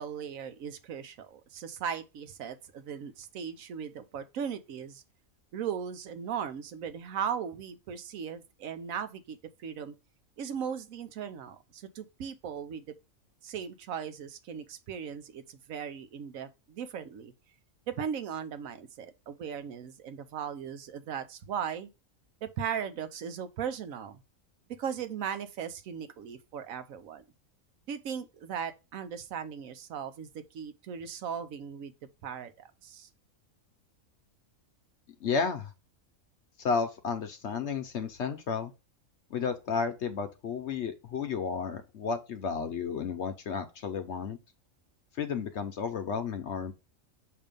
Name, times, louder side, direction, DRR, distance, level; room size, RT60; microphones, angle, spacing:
voice 1, 0.0-5.0 5.5-9.9 10.4-12.9 13.4-17.3 17.9-21.9 22.4-24.2 24.8-27.2 27.9-31.9 32.2-33.1, right 7 dB, 80° right, 1.1 m, -38 dB
voice 2, 35.2-35.7 36.6-38.7 39.3-44.4 45.2-46.7, left 5 dB, 60° left, 0.9 m, -32 dB
6.8 x 2.8 x 5.1 m
omnidirectional pair, 1.4 m